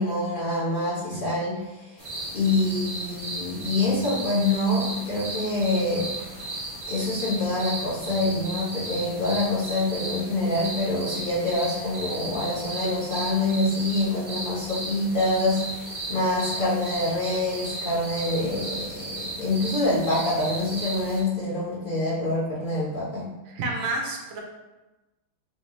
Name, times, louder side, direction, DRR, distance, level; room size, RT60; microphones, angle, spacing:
voice 1, 0.0-1.9 2.3-6.1 6.9-23.3, left 2 dB, 45° left, -8 dB, 0.6 m, -26 dB
sound 1, 2.0-21.2, right 2 dB, 45° right, 0.4 m, -35 dB
voice 2, 23.5-24.4, right 2 dB, 80° right, 1 dB, 1.5 m, -30 dB
3.7 x 3.2 x 2.7 m, 1.1 s
omnidirectional pair, 2.1 m